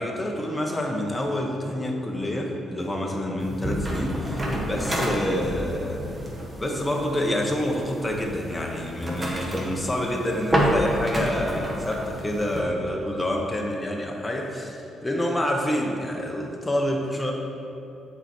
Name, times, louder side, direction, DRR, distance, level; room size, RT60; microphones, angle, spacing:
voice 1, 0.0-6.0 6.6-17.3, left 1 dB, 10° left, -1 dB, 0.8 m, -27 dB
sound 1, 3.4-12.6, equal, 20° right, 1.2 m, -29 dB
6.7 x 4.6 x 4.3 m, 2.9 s
cardioid pair, 90°, 0 cm